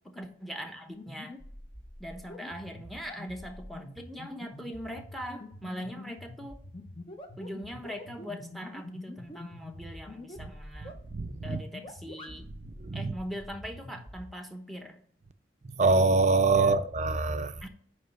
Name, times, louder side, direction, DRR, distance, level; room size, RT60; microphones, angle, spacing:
voice 1, 0.0-1.4 2.0-6.6 7.4-11.0 11.4-12.5 12.9-15.0 16.5-16.8 17.6-17.7, equal, ahead, 1.0 m, -41 dB
sound 1, 0.9-14.2, left 1 dB, 30° left, 1.0 m, -45 dB
voice 2, 11.1-11.6 12.8-13.1 15.8-17.5, right 3 dB, 40° right, 0.5 m, -24 dB
9.5 x 3.2 x 5.8 m
head